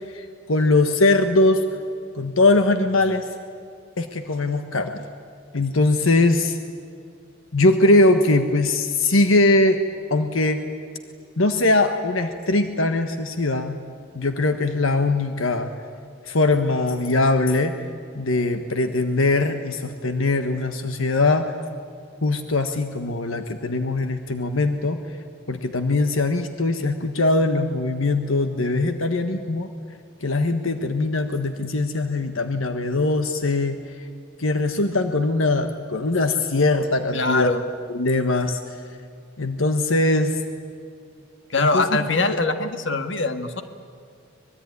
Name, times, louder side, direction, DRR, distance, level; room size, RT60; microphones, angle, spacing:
voice 1, 0.1-1.6 2.1-3.3 4.0-5.0 5.5-6.6 7.5-9.8 10.1-10.6 11.4-13.8 14.1-15.7 16.3-17.7 18.1-21.5 22.2-25.0 25.5-29.7 30.2-33.8 34.4-37.5 37.9-38.6 39.4-40.4 41.6-41.9, left 2 dB, 80° left, 7 dB, 1.4 m, -21 dB
voice 2, 37.1-37.6 41.5-43.6, left 3 dB, 65° left, 8 dB, 1.7 m, -22 dB
24.5 x 21.5 x 9.7 m, 2.3 s
head